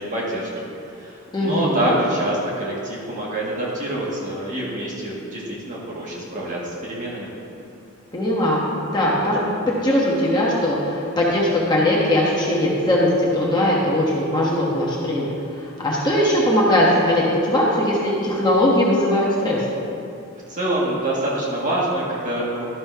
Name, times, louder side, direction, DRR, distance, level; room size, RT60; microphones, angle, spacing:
voice 1, 0.0-7.3 20.5-22.7, right 1 dB, 35° right, -6 dB, 1.9 m, -26 dB
voice 2, 1.3-2.0 8.1-9.4 9.7-19.6, left 1 dB, 20° left, -5 dB, 1.2 m, -20 dB
12.5 x 4.3 x 5.6 m, 2.6 s
head